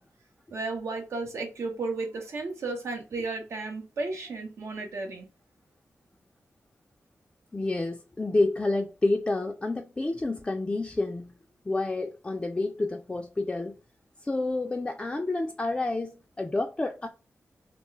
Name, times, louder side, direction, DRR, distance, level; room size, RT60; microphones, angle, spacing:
voice 1, 0.5-5.3, right 3 dB, 80° right, 0.8 m, -33 dB
voice 2, 7.5-11.3 11.7-13.7 14.2-17.1, left 2 dB, 20° left, 0.3 m, -29 dB
2.3 x 2.2 x 3.0 m
wide cardioid pair, 85°, 5 cm